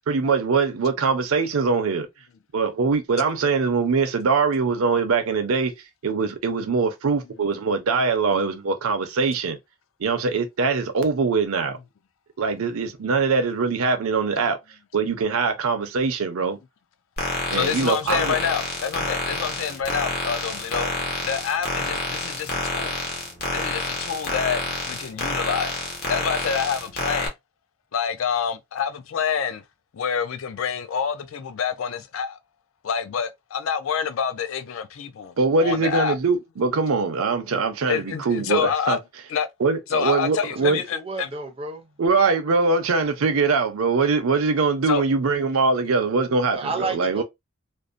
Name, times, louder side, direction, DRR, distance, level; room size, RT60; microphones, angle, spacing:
voice 1, 0.1-2.1 2.5-5.7 6.0-9.6 10.0-11.8 12.4-14.6 14.9-16.6 17.5-18.4 35.4-39.0 39.6-40.8 42.0-46.6 46.9-47.2, right 4 dB, 80° right, 0.5 m, -22 dB
sound 1, 17.2-27.3, left 2 dB, 45° left, 0.8 m, -28 dB
voice 2, 17.5-20.9 21.2-23.0 23.5-25.7 26.1-27.3 27.9-29.6 29.9-32.4 32.8-35.3 35.6-36.2 37.8-39.0 39.3-39.5 39.9-41.3 44.9-45.0, left 7 dB, 70° left, 0.4 m, -27 dB
voice 3, 40.6-41.9 46.5-47.2, right 3 dB, 25° right, 0.4 m, -32 dB
2.6 x 2.0 x 2.4 m
head